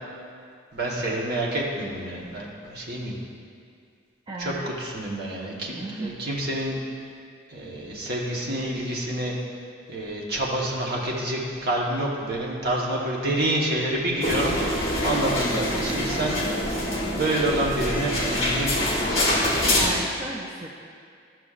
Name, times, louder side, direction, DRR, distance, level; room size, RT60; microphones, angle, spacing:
voice 1, 0.7-3.1 4.4-4.5 4.8-6.8 7.5-9.3 9.9-14.8 15.0-16.3 16.7-16.8 17.1-19.2, right 1 dB, 55° right, -3 dB, 1.2 m, -28 dB
voice 2, 4.3-4.7 5.7-6.2 15.7-16.3 19.8-20.7, right 2 dB, 25° right, -2 dB, 0.4 m, -35 dB
sound 1, 14.2-19.9, left 1 dB, 30° left, 1.4 m, -25 dB
12.5 x 6.0 x 2.4 m, 2.2 s
head